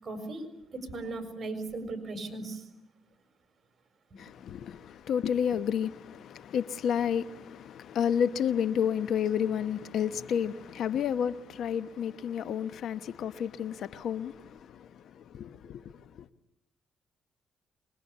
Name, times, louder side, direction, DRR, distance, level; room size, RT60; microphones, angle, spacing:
voice 1, 0.0-0.5 0.7-2.6, right 2 dB, 35° right, 6.6 m, -37 dB
voice 2, 4.2-14.9 15.2-15.9, left 8 dB, 70° left, 1.0 m, -31 dB
26.0 x 22.5 x 8.5 m
cardioid pair, 90°, 0 cm